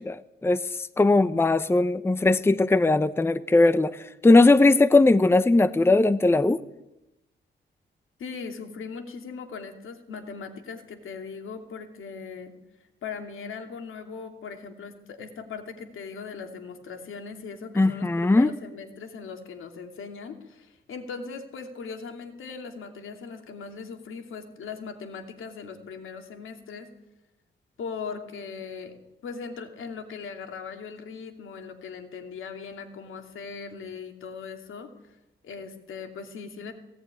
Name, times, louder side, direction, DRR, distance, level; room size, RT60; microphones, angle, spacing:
voice 1, 0.0-0.6 1.0-6.6 17.8-18.5, left 2 dB, 10° left, 14 dB, 0.7 m, -19 dB
voice 2, 8.2-12.5 13.0-26.9 27.8-29.0 29.2-34.9 35.4-36.7, left 5 dB, 80° left, 5 dB, 2.9 m, -39 dB
18.0 x 17.5 x 9.8 m, 0.93 s
wide cardioid pair, 125°, 20 cm